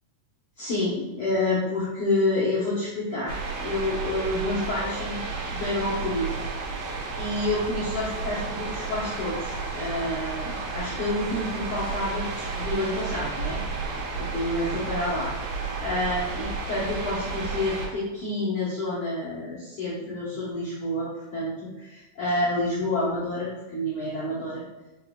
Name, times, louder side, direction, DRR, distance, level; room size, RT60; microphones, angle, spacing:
voice 1, 0.6-6.3 6.6-6.7 7.2-13.6 13.8-15.3 15.8-24.6, left 2 dB, 70° left, -11 dB, 1.2 m, -29 dB
sound 1, 3.3-17.9, right 4 dB, 85° right, 2.5 m, -32 dB
5.2 x 3.1 x 2.2 m, 1.1 s
omnidirectional pair, 3.9 m